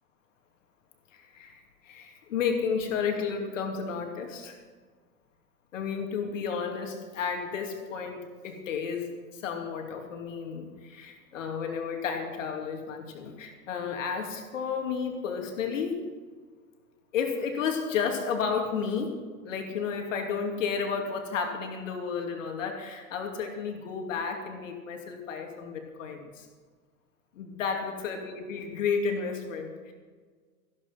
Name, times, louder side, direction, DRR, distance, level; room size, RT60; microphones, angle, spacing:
voice 1, 1.1-4.6 5.7-16.0 17.1-19.2 19.4-26.5 27.3-29.9, left 6 dB, 55° left, 3 dB, 2.7 m, -32 dB
15.0 x 12.0 x 5.8 m, 1.5 s
figure-of-eight pair, 95°, 45 cm